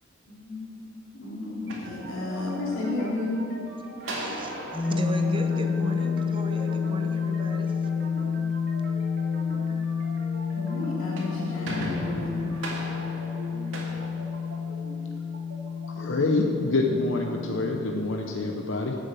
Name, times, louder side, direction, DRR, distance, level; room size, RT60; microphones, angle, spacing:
voice 1, 0.3-0.9 1.1-3.4 10.5-12.4, left 2 dB, 85° left, -4 dB, 3.1 m, -32 dB
sound 1, 1.5-2.7 4.0-6.5 10.9-15.0, right 1 dB, 80° right, 2.1 m, -39 dB
sound 2, 1.7-17.7, right 1 dB, 60° right, 2.8 m, -43 dB
voice 2, 4.1-4.5 4.8-7.8, right 1 dB, 25° right, 5 dB, 0.8 m, -35 dB
sound 3, 4.7-17.8, left 5 dB, 5° left, 2.4 m, -29 dB
voice 3, 16.0-19.0, left 2 dB, 70° left, 2 dB, 0.8 m, -26 dB
12.0 x 6.6 x 7.5 m, 2.8 s
head